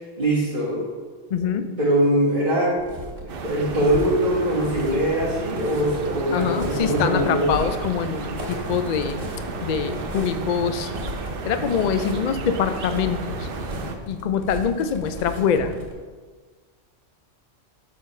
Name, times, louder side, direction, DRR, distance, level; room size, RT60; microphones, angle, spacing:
voice 1, 0.2-0.9 1.4-1.5 1.8-2.8 3.4-7.5, right 1 dB, 40° right, -9 dB, 1.5 m, -22 dB
voice 2, 1.3-1.7 6.3-9.2 9.6-10.9 11.4-13.5 14.1-15.7, left 7 dB, 75° left, 10 dB, 0.4 m, -24 dB
sound 1, 2.8-15.9, equal, 80° right, 2.2 m, -35 dB
sound 2, 3.3-14.0, right 4 dB, 55° right, 0.7 m, -33 dB
6.4 x 4.2 x 5.4 m, 1.5 s
omnidirectional pair, 1.3 m